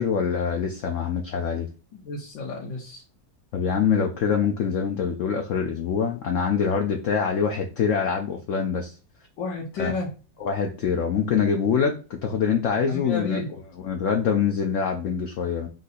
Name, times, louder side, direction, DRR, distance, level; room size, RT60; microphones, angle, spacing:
voice 1, 0.0-1.7 3.5-8.9 9.8-9.9 10.4-13.4 13.8-15.7, left 6 dB, 65° left, 2 dB, 0.8 m, -24 dB
voice 2, 1.9-3.0 9.4-10.1 12.8-13.5, left 3 dB, 90° left, -1 dB, 1.6 m, -31 dB
3.9 x 2.7 x 4.0 m, 0.33 s
omnidirectional pair, 1.9 m